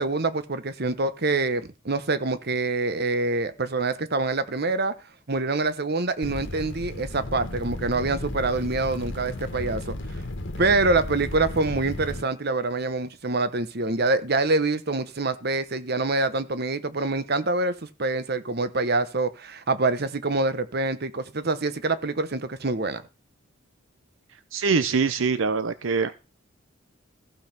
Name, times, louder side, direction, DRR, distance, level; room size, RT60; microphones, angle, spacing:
voice 1, 0.0-4.9 5.3-9.9 10.6-17.7 18.0-23.0, right 3 dB, 50° right, 1.1 m, -25 dB
sound 1, 6.2-12.2, left 1 dB, 65° left, 1.5 m, -34 dB
voice 2, 24.5-26.1, right 5 dB, 75° right, 0.7 m, -23 dB
15.0 x 5.5 x 5.9 m
head